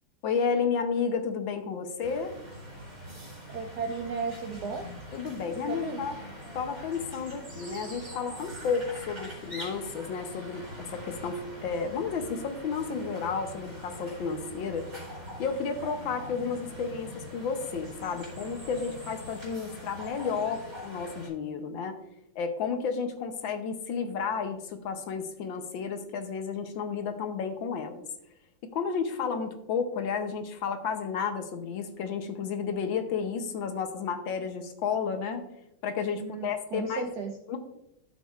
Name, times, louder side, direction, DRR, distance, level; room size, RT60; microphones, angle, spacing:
voice 1, 0.2-2.3 5.1-6.2 6.5-14.9 15.4-22.0 22.4-28.0 28.6-35.4 35.8-37.1 37.5-37.6, left 6 dB, 70° left, 7 dB, 1.4 m, -32 dB
sound 1, 2.0-21.3, equal, 40° right, 3.2 m, -43 dB
voice 2, 3.5-4.8 5.6-6.0 36.1-37.4, right 5 dB, 75° right, 4 dB, 0.9 m, -35 dB
12.0 x 6.2 x 2.4 m, 0.85 s
omnidirectional pair, 2.4 m